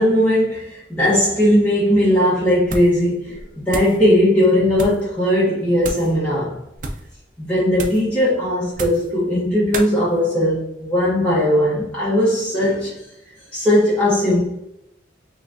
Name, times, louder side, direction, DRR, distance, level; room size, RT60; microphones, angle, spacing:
voice 1, 0.0-6.6 7.4-13.0 13.5-14.5, left 1 dB, 10° left, -9 dB, 0.9 m, -18 dB
sound 1, 2.6-3.0 3.3-4.0 4.7-5.1 5.8-6.1 6.7-7.1 7.7-8.1 8.7-9.1 9.7-9.9, right 2 dB, 45° right, 0.5 m, -30 dB
5.6 x 2.3 x 2.6 m, 0.82 s
head